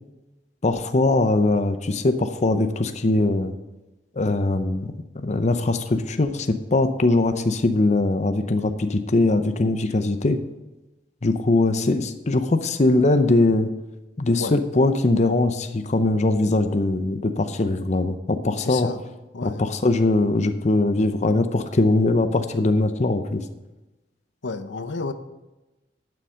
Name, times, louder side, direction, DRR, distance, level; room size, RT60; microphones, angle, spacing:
voice 1, 0.6-3.5 4.2-10.4 11.2-13.7 14.2-18.9 19.4-23.4, left 2 dB, 40° left, 9 dB, 0.6 m, -21 dB
voice 2, 18.6-19.0 19.3-19.6 24.4-25.1, left 4 dB, 90° left, 10 dB, 0.8 m, -31 dB
11.0 x 7.0 x 6.3 m, 1.1 s
head